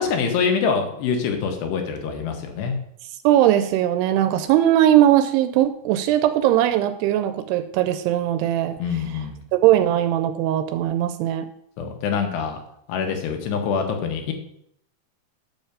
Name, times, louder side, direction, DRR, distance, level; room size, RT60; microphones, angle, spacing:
voice 1, 0.0-2.8 8.8-9.4 11.8-12.6 12.9-14.3, left 6 dB, 85° left, 4 dB, 3.3 m, -25 dB
voice 2, 3.2-8.8 9.5-11.5, right 12 dB, 85° right, 10 dB, 2.6 m, -19 dB
6.9 x 5.7 x 6.7 m, 0.71 s
omnidirectional pair, 4.6 m